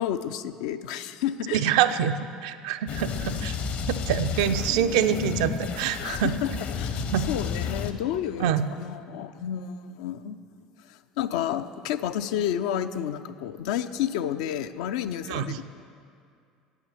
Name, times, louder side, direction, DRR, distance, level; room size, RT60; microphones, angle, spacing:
voice 1, 0.0-2.0 6.0-10.4 10.8-15.6, left 10 dB, 65° left, 10 dB, 0.4 m, -31 dB
voice 2, 1.5-2.2 2.4-3.6 3.9-6.3 7.1-7.2 8.4-8.6 15.3-15.6, right 9 dB, 65° right, 10 dB, 0.4 m, -25 dB
sound 1, 2.9-7.9, left 6 dB, 50° left, 0.8 m, -31 dB
8.5 x 8.2 x 7.0 m, 2.3 s
figure-of-eight pair, 65°, 4 cm